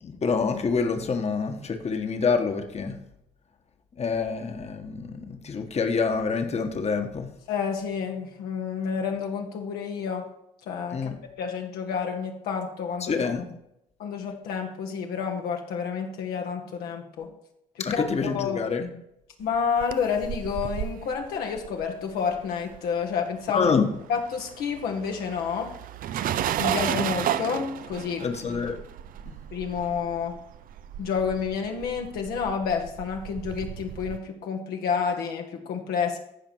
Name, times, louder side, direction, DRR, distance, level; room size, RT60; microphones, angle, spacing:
voice 1, 0.0-2.9 4.0-7.3 10.9-11.2 13.0-13.4 17.8-18.9 23.5-23.9 28.2-28.8 29.3-29.4, left 5 dB, 40° left, 5 dB, 1.4 m, -27 dB
voice 2, 7.5-10.3 10.7-11.1 11.4-13.3 14.0-17.3 17.8-18.6 19.4-23.7 24.1-25.7 26.6-28.3 29.5-30.4 31.0-36.2, left 6 dB, 75° left, 2 dB, 1.3 m, -29 dB
sound 1, 19.5-23.2 23.5-34.2, right 10 dB, 60° right, 0.5 m, -33 dB
15.0 x 5.1 x 4.6 m, 0.80 s
hypercardioid pair, 55°, 16 cm